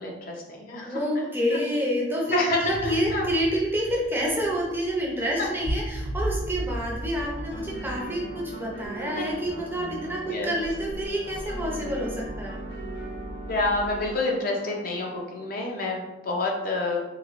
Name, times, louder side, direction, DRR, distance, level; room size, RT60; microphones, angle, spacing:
voice 1, 0.0-1.6 2.3-3.3 9.0-9.2 10.3-10.5 13.5-17.0, left 2 dB, 45° left, 0 dB, 0.5 m, -28 dB
voice 2, 0.8-12.6, equal, 10° right, -3 dB, 0.5 m, -28 dB
sound 1, 2.7-14.1, equal, 60° right, 0.7 m, -37 dB
sound 2, 7.3-15.2, right 2 dB, 75° left, 1.3 m, -40 dB
3.2 x 3.1 x 2.4 m, 1.0 s
head